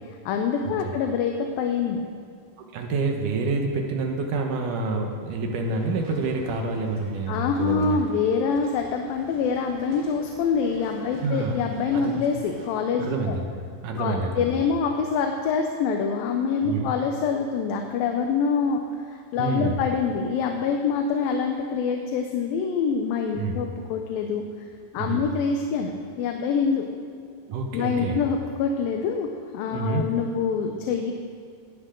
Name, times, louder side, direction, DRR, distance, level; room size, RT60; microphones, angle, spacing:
voice 1, 0.3-2.0 7.3-13.4 14.0-18.8 19.1-24.4 24.9-25.9 26.2-26.8 27.7-29.3 29.5-31.1, left 5 dB, 80° left, 3 dB, 2.6 m, -25 dB
voice 2, 2.7-8.0 11.2-11.6 11.9-12.2 13.0-13.5 13.8-14.6 16.6-16.9 19.4-19.7 23.4-23.6 25.0-25.2 27.5-28.3 29.7-30.0, right 3 dB, 65° right, 2 dB, 2.6 m, -27 dB
sound 1, 5.6-12.7, right 1 dB, 35° right, 1.4 m, -48 dB
18.5 x 12.5 x 3.9 m, 2.3 s
omnidirectional pair, 4.2 m